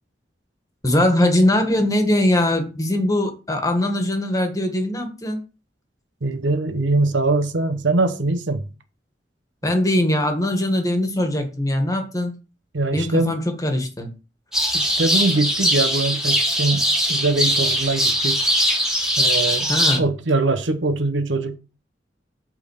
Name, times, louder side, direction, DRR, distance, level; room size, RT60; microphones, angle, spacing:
voice 1, 0.8-5.4 9.6-12.4 12.9-14.1 19.7-20.0, left 1 dB, 20° left, 1.6 m, -21 dB
voice 2, 6.2-8.6 12.7-13.4 14.7-18.5 19.2-19.7 20.0-21.6, right 2 dB, 90° right, 1.0 m, -22 dB
sound 1, 14.5-20.0, equal, 5° right, 1.7 m, -21 dB
8.6 x 3.8 x 6.6 m
head